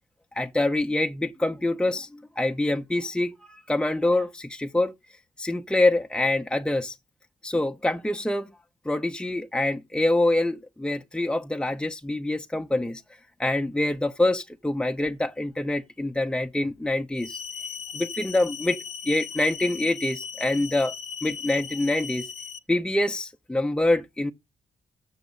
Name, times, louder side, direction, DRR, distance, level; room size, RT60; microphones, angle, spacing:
voice 1, 0.3-4.9 5.4-7.0 7.4-8.5 8.8-13.0 13.4-17.4 17.9-18.8 19.0-20.9 21.2-22.3 22.7-24.3, left 2 dB, 5° left, 0.8 m, -25 dB
sound 1, 17.2-22.6, left 6 dB, 65° left, 0.7 m, -38 dB
7.3 x 6.4 x 6.6 m
hypercardioid pair, 45°, 13 cm